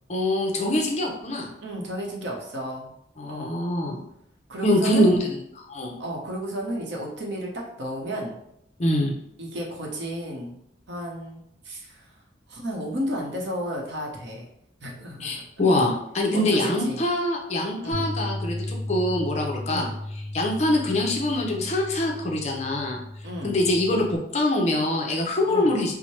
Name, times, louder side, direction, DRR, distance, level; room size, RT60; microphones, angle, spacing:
voice 1, 0.1-1.5 3.2-4.0 4.6-5.4 5.7-6.0 8.8-9.1 15.2-19.9 20.3-23.0 23.4-25.9, left 1 dB, 35° left, 0 dB, 0.5 m, -24 dB
voice 2, 1.6-2.9 3.3-3.6 4.5-5.1 6.0-7.5 7.8-8.4 9.4-10.6 10.9-12.0 12.5-14.5 14.8-15.5 16.3-17.0 17.8-18.1 19.7-19.9 23.2-23.6 25.5-25.7, equal, 70° right, -1 dB, 0.8 m, -32 dB
Bass guitar, 17.9-24.2, left 1 dB, 20° right, 0.7 m, -35 dB
4.5 x 2.1 x 3.0 m, 0.78 s
head